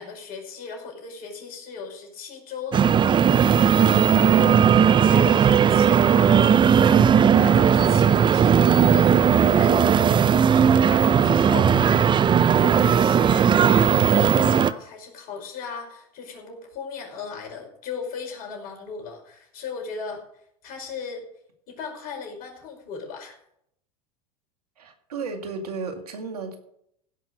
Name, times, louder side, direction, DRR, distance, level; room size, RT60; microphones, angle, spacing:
voice 1, 0.0-2.9 3.7-12.2 12.6-20.2 20.6-21.3 21.7-23.4, left 5 dB, 50° left, 1 dB, 5.3 m, -37 dB
sound 1, 2.7-14.7, right 8 dB, 25° right, 0.6 m, -17 dB
voice 2, 24.8-26.6, right 4 dB, 90° right, 4 dB, 2.2 m, -33 dB
16.5 x 6.0 x 6.5 m, 0.72 s
hypercardioid pair, 95°, 19 cm